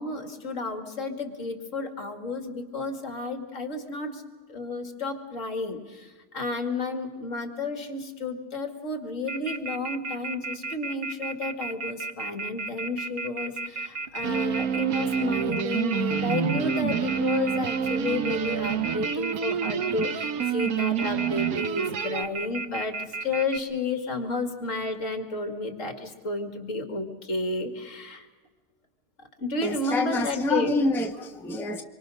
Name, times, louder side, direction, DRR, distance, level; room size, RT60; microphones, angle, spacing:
voice 1, 0.0-4.2 4.5-6.1 6.3-28.3 29.4-30.8, left 3 dB, 60° left, 6 dB, 2.5 m, -31 dB
Telephone, 9.3-23.6, right 4 dB, 45° right, 1.1 m, -33 dB
sound 1, 14.2-22.2, right 8 dB, 80° right, 1.4 m, -28 dB
voice 2, 29.6-31.8, left 2 dB, ahead, 4 dB, 1.1 m, -27 dB
25.5 x 24.0 x 6.3 m, 1.3 s
omnidirectional pair, 1.5 m